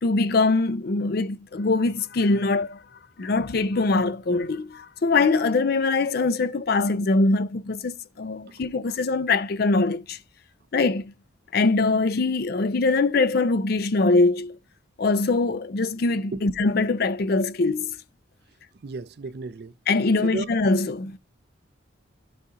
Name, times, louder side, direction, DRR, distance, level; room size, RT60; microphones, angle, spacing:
voice 1, 0.0-2.8 3.2-10.2 10.7-11.1 11.5-14.6 15.0-18.0 19.9-21.2, left 3 dB, 50° left, 0.4 m, -23 dB
voice 2, 16.1-16.7 18.8-19.7 20.2-20.5, right 3 dB, 55° right, 0.4 m, -35 dB
12.0 x 4.1 x 3.7 m
head